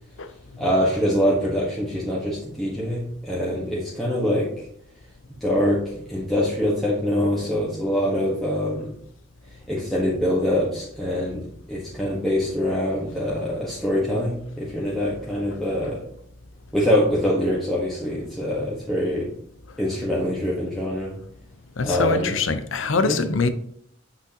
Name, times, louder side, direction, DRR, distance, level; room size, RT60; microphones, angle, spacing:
voice 1, 0.6-4.5 5.4-8.9 9.7-11.4 11.7-16.0 16.7-19.3 19.8-21.1 21.8-22.4 23.0-23.2, equal, ahead, 1.4 m, -24 dB
voice 2, 21.8-23.5, left 4 dB, 85° left, 0.7 m, -23 dB
8.3 x 6.2 x 2.9 m
head